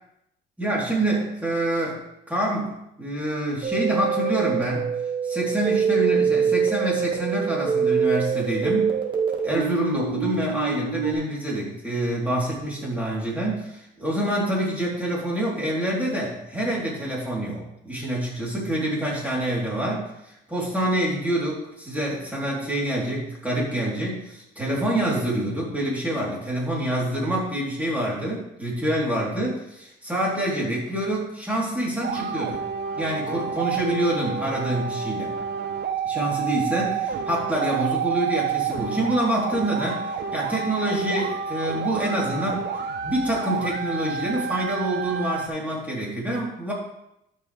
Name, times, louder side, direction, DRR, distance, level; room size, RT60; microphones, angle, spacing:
voice 1, 0.6-2.0 2.3-4.9 5.2-9.0 9.4-32.6 33.0-35.3 36.0-46.7, right 1 dB, 5° right, -5 dB, 4.0 m, -26 dB
sound 1, 3.6-11.1, right 6 dB, 25° right, 2.1 m, -24 dB
sound 2, 32.0-45.5, right 7 dB, 60° right, 0.7 m, -29 dB
13.0 x 5.7 x 3.6 m, 0.82 s
cardioid pair, 90°, 20 cm